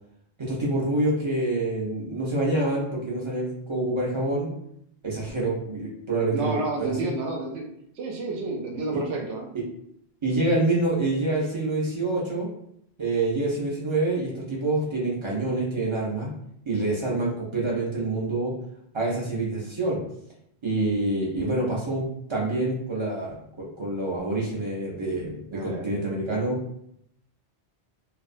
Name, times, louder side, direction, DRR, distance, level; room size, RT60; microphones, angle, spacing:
voice 1, 0.4-4.5 5.0-7.1 8.9-9.0 10.2-12.5 13.0-16.3 16.6-18.5 18.9-20.0 20.6-22.0 22.3-26.8, right 2 dB, 45° right, -4 dB, 0.4 m, -27 dB
voice 2, 6.3-7.6 8.0-9.5 25.5-25.9, right 3 dB, 80° right, 2 dB, 0.9 m, -30 dB
2.5 x 2.1 x 2.5 m, 0.72 s
omnidirectional pair, 1.2 m